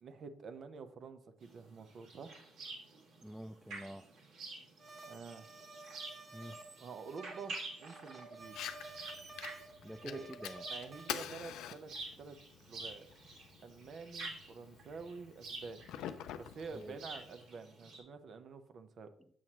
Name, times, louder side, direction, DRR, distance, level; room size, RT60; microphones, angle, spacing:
voice 1, 0.0-2.3 5.1-5.5 6.8-8.6 10.0-10.3 10.7-11.9 12.2-12.4 12.7-13.1 13.6-15.9 16.4-19.1, right 5 dB, 55° right, 9 dB, 0.7 m, -48 dB
sound 1, 1.4-18.0, right 2 dB, 80° right, 2.0 m, -49 dB
voice 2, 3.2-4.1 6.3-6.6 9.8-10.7 16.7-17.0 19.2-19.3, equal, ahead, 11 dB, 0.3 m, -47 dB
sound 2, 4.8-11.2, right 2 dB, 40° right, 1.6 m, -53 dB
Fire, 8.4-17.4, left 10 dB, 90° left, 0.4 m, -47 dB
7.3 x 6.3 x 2.9 m, 0.63 s
cardioid pair, 90°, 0 cm